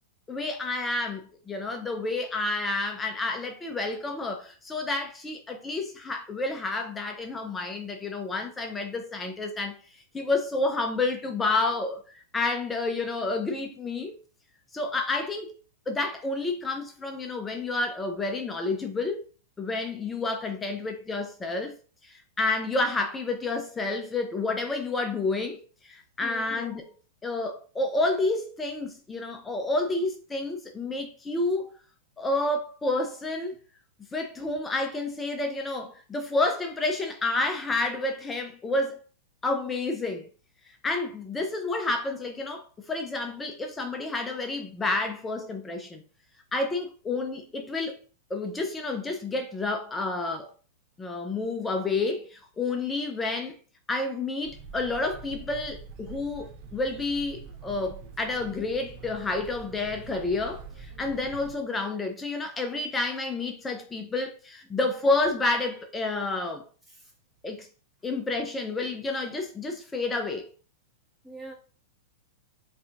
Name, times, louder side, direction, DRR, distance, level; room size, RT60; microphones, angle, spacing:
voice 1, 0.3-9.8 10.1-14.1 14.7-15.5 15.9-19.2 19.6-21.7 22.0-26.8 27.2-31.7 32.2-33.5 34.1-39.0 39.4-40.2 40.8-46.0 46.5-48.0 48.3-50.5 51.0-53.6 53.9-66.6 67.4-67.7 68.0-70.5, left 2 dB, 15° left, 0.5 m, -29 dB
voice 2, 26.2-26.6 66.9-67.1 71.2-71.5, right 1 dB, 5° right, 1.6 m, -43 dB
sound 1, 54.4-61.6, right 5 dB, 45° right, 0.7 m, -45 dB
4.0 x 2.7 x 2.4 m
hypercardioid pair, 110°, 0 cm